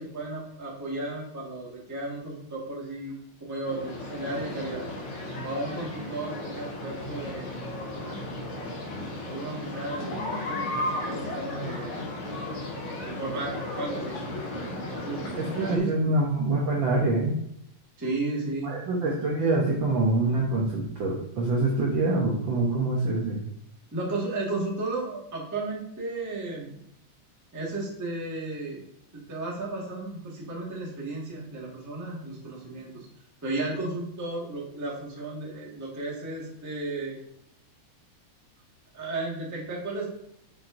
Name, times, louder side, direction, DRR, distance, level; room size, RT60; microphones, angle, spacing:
voice 1, 0.0-4.9 5.4-7.5 8.0-8.8 9.2-12.0 13.0-14.2 14.8-16.1 18.0-18.7 23.9-26.7 27.5-28.9 29.1-33.1 33.4-37.2 38.9-40.1, right 2 dB, 10° right, -4 dB, 0.7 m, -34 dB
sound 1, 3.6-15.8, left 1 dB, 55° left, 2.3 m, -35 dB
voice 2, 15.4-17.4 18.6-23.4, right 2 dB, 65° right, -2 dB, 1.2 m, -25 dB
7.0 x 5.8 x 2.6 m, 0.73 s
omnidirectional pair, 3.3 m